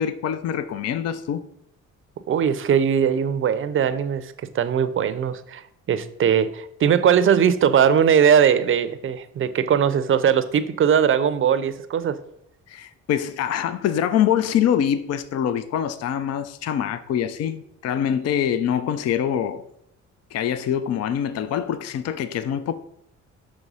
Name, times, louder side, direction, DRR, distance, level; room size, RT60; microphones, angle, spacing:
voice 1, 0.0-1.4 12.7-19.7 20.3-22.7, left 9 dB, 55° left, 0.5 m, -24 dB
voice 2, 2.3-12.2, right 8 dB, 45° right, 0.5 m, -20 dB
6.1 x 3.2 x 5.4 m
cardioid pair, 90°, 30 cm